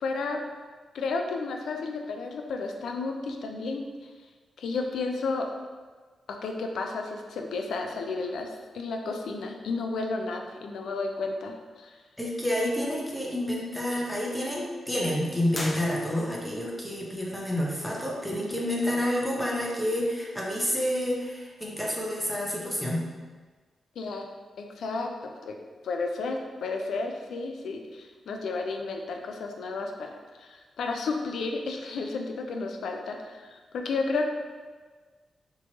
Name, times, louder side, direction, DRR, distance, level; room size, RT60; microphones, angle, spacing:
voice 1, 0.0-0.4 0.9-3.8 4.6-5.4 6.4-8.5 8.7-11.9 24.0-24.2 24.6-25.5 25.8-30.1 30.4-34.3, left 3 dB, 85° left, 3 dB, 0.5 m, -32 dB
voice 2, 12.2-23.1, left 1 dB, 5° left, -4 dB, 0.8 m, -29 dB
sound 1, 15.5-16.5, left 1 dB, 30° left, 0.7 m, -37 dB
4.4 x 3.0 x 2.9 m, 1.4 s
cardioid pair, 95°, 0 cm